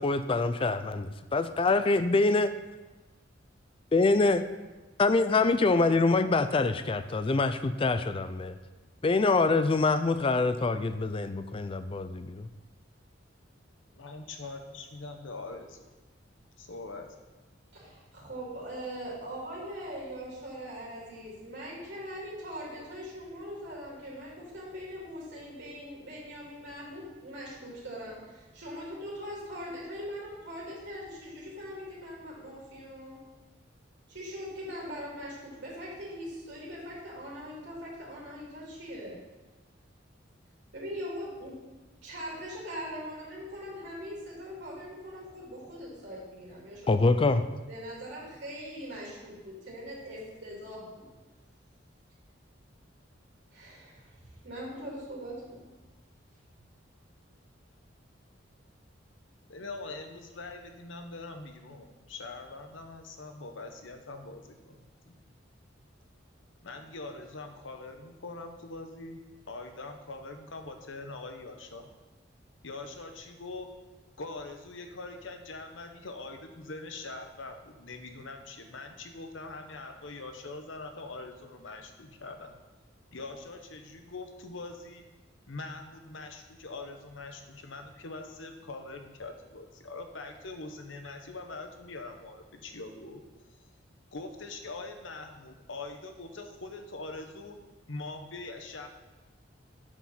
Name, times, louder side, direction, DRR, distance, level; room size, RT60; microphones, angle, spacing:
voice 1, 0.0-2.5 3.9-4.4 5.0-8.6 9.0-12.3 46.9-47.5, left 3 dB, 30° left, 11 dB, 0.4 m, -25 dB
voice 2, 13.9-15.8 16.6-17.1 59.5-65.2 66.6-69.2 69.5-71.9 72.6-73.7 74.2-82.6 83.1-85.1 85.5-93.2 94.1-97.6 97.9-98.9, left 3 dB, 90° left, 5 dB, 1.0 m, -43 dB
voice 3, 17.7-33.2 34.1-39.2 40.7-41.6 42.0-47.2 47.7-51.1 53.5-55.6, equal, 65° right, -6 dB, 2.9 m, -41 dB
8.9 x 5.1 x 5.7 m, 1.2 s
head